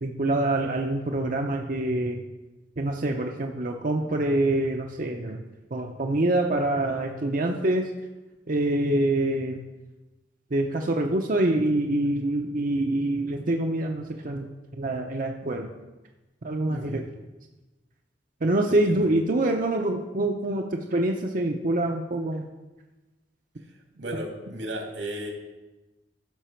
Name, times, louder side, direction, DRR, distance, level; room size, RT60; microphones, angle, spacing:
voice 1, 0.0-2.2 2.8-5.4 5.7-7.8 8.5-9.6 10.5-14.5 14.7-15.7 16.4-17.0 18.4-22.5, right 1 dB, 45° right, 2 dB, 0.7 m, -25 dB
voice 2, 16.7-17.0 18.7-19.1 23.9-25.3, right 1 dB, 90° right, 1 dB, 2.5 m, -35 dB
15.0 x 6.1 x 4.5 m, 1.1 s
head